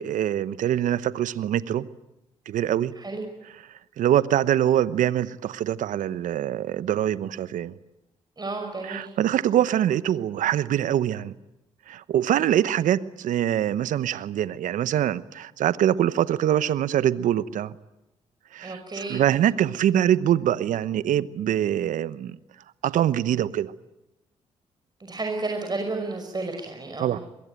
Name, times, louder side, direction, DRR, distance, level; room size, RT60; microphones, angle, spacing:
voice 1, 0.0-1.9 2.5-2.9 4.0-7.7 8.8-11.3 11.9-17.8 18.5-22.4 22.8-23.7 27.0-27.2, right 11 dB, 70° right, 1.0 m, -24 dB
voice 2, 8.4-9.1 18.6-19.2 25.0-27.2, right 3 dB, 30° right, 5.8 m, -32 dB
25.0 x 22.0 x 9.1 m
hypercardioid pair, 45°, 14 cm